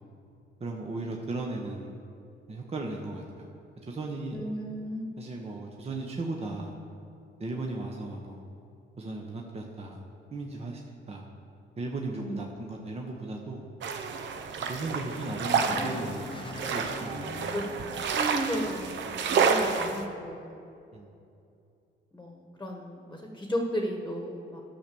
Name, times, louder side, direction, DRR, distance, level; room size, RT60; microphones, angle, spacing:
voice 1, 0.6-1.9 2.5-3.5 3.9-4.4 5.2-6.7 7.4-8.4 9.0-10.0 10.3-10.8 11.1-11.3 11.8-13.7 14.6-16.3 16.7-17.5 20.9-21.1, right 2 dB, 30° right, 0 dB, 1.1 m, -36 dB
voice 2, 4.3-5.1 12.1-12.4 17.5-20.6 22.1-24.6, equal, 10° left, 1 dB, 1.4 m, -34 dB
sound 1, 13.8-20.0, right 5 dB, 65° right, 0.9 m, -29 dB
sound 2, 14.5-19.2, left 4 dB, 25° left, 0.6 m, -44 dB
11.5 x 6.0 x 7.0 m, 2.6 s
cardioid pair, 90°, 20 cm